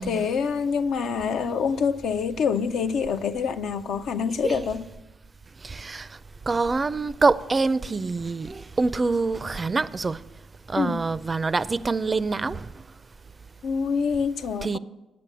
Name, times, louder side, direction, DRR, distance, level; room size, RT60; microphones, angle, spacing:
voice 1, 0.0-4.8 10.7-11.0 13.6-14.8, left 6 dB, 70° left, 0.4 m, -26 dB
voice 2, 5.6-6.2 6.5-10.2 10.7-12.7 14.6-14.8, right 3 dB, 35° right, 0.4 m, -25 dB
9.4 x 6.8 x 7.1 m
supercardioid pair, 55°, 0 cm